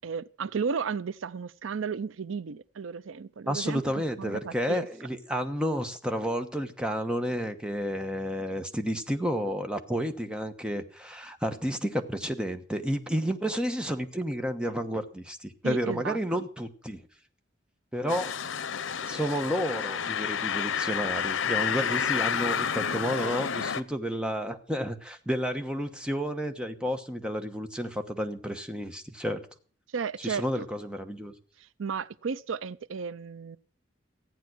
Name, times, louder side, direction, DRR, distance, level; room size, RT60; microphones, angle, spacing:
voice 1, 0.0-3.8 4.2-4.9 15.6-16.5 29.9-30.7 31.8-33.6, right 6 dB, 90° right, 0.5 m, -34 dB
voice 2, 3.5-17.0 17.9-18.4 19.0-29.5 30.2-31.3, equal, 5° right, 1.1 m, -31 dB
sound 1, 18.1-23.8, left 7 dB, 85° left, 0.7 m, -30 dB
14.5 x 9.3 x 6.1 m
head